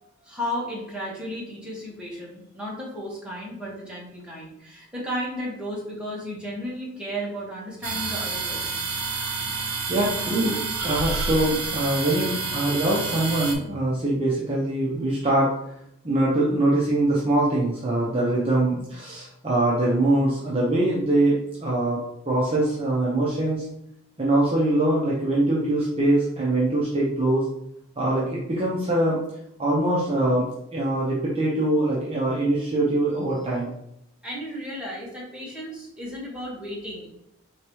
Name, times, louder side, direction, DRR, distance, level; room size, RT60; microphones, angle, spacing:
voice 1, 0.2-8.8 34.2-37.1, equal, 5° right, -6 dB, 1.4 m, -34 dB
sound 1, 7.8-13.5, right 4 dB, 60° right, 1.0 m, -29 dB
voice 2, 9.9-15.5 16.0-23.7 24.2-27.5 28.0-29.2 29.6-33.7, right 1 dB, 25° right, -5 dB, 0.7 m, -23 dB
4.6 x 3.4 x 3.0 m, 0.79 s
head